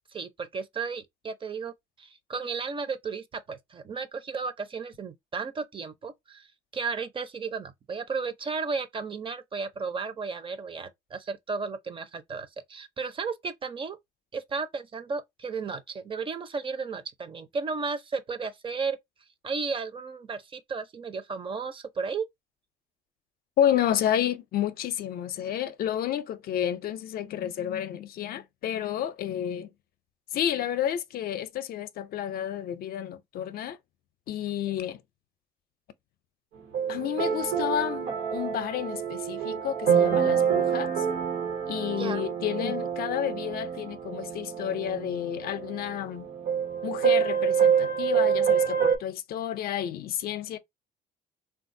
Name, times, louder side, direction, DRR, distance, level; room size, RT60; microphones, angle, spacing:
voice 1, 0.1-1.7 2.0-6.5 6.7-14.0 14.3-19.0 19.4-22.3 42.0-42.2, right 5 dB, 30° right, 0.6 m, -34 dB
voice 2, 23.6-29.7 30.3-33.8 34.3-35.0 36.9-41.1 41.7-46.3 46.8-50.6, left 10 dB, 65° left, 0.5 m, -30 dB
sound 1, 36.7-49.0, right 7 dB, 80° right, 1.2 m, -27 dB
3.4 x 2.4 x 2.6 m
cardioid pair, 110°, 17 cm